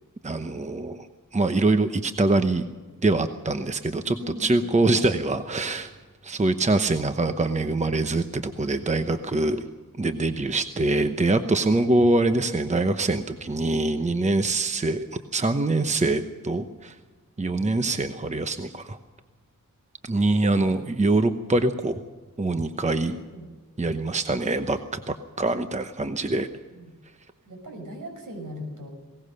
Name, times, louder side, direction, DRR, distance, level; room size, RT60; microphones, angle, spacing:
voice 1, 0.2-1.1 1.3-2.7 3.0-4.1 4.4-5.9 6.2-9.6 10.0-15.1 15.3-17.0 17.4-19.0 20.0-22.0 22.4-23.2 23.8-26.5, right 2 dB, 20° right, 8 dB, 0.9 m, -24 dB
voice 2, 3.9-4.7 23.0-23.4 26.7-26.9 27.4-28.9, equal, 65° right, 4 dB, 6.5 m, -39 dB
21.0 x 19.0 x 6.6 m, 1.4 s
wide cardioid pair, 115°, 33 cm